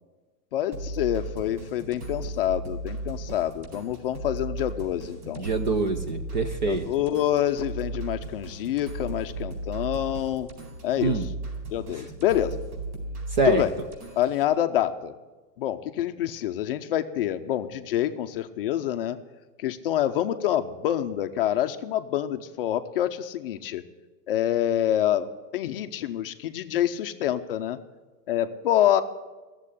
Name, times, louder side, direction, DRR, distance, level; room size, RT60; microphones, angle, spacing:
voice 1, 0.5-5.5 6.6-10.5 10.8-11.3 11.7-12.6 13.5-13.7 14.2-15.1 15.6-19.2 19.6-23.8 24.3-27.8 28.3-29.0, left 11 dB, 40° left, 9 dB, 0.5 m, -26 dB
sound 1, 0.7-14.4, right 2 dB, 75° right, 4.4 m, -36 dB
voice 2, 5.4-6.8 11.0-11.3 13.3-13.6, right 3 dB, 35° right, 8 dB, 0.4 m, -25 dB
14.0 x 7.5 x 9.8 m, 1.2 s
supercardioid pair, 175°, 47 cm